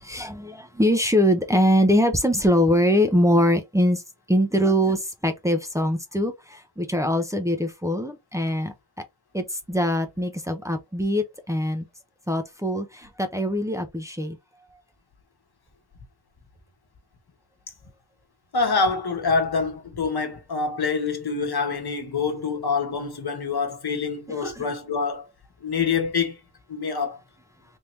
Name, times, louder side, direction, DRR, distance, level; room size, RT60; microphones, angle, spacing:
voice 1, 0.0-4.0 4.3-8.7 9.3-11.8 12.3-14.4 24.4-24.7, equal, 10° right, 0.7 m, -23 dB
voice 2, 18.5-25.3 25.6-26.4 26.7-27.2, left 5 dB, 70° left, 1.2 m, -26 dB
3.5 x 2.8 x 3.2 m
wide cardioid pair, 75°, 40 cm